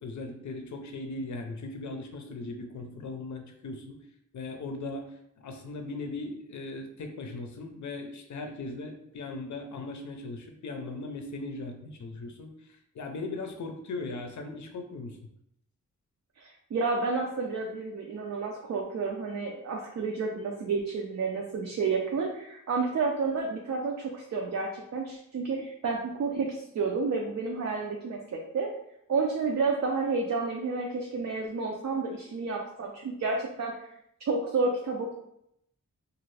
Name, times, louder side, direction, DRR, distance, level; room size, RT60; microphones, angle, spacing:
voice 1, 0.0-4.0 4.3-12.5 12.9-15.2, left 3 dB, 65° left, 4 dB, 0.5 m, -38 dB
voice 2, 16.4-28.7 29.1-33.7 34.3-35.1, right 4 dB, 60° right, 0 dB, 0.4 m, -30 dB
2.6 x 2.4 x 3.2 m, 0.76 s
wide cardioid pair, 145°, 31 cm